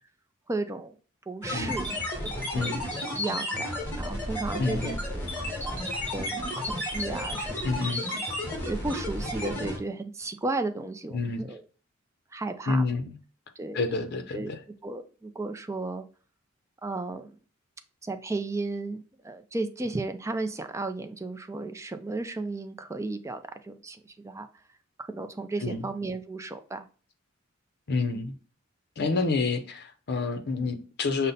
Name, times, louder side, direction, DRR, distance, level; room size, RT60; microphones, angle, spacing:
voice 1, 0.5-0.9 1.3-1.9 2.2-2.8 3.2-5.3 5.6-7.7 8.6-11.6 12.3-12.8 13.6-14.6 14.8-16.0 16.8-17.3 18.0-24.5 25.0-26.9 28.1-28.3 29.0-29.1, right 2 dB, 15° right, 0.4 m, -34 dB
sound 1, 1.4-9.8, left 1 dB, 10° left, 1.4 m, -32 dB
voice 2, 4.6-5.0 7.6-8.0 11.1-11.5 12.7-13.1 13.7-14.6 25.6-25.8 27.9-28.3 29.0-31.3, left 3 dB, 55° left, 0.6 m, -28 dB
5.3 x 2.1 x 4.0 m
head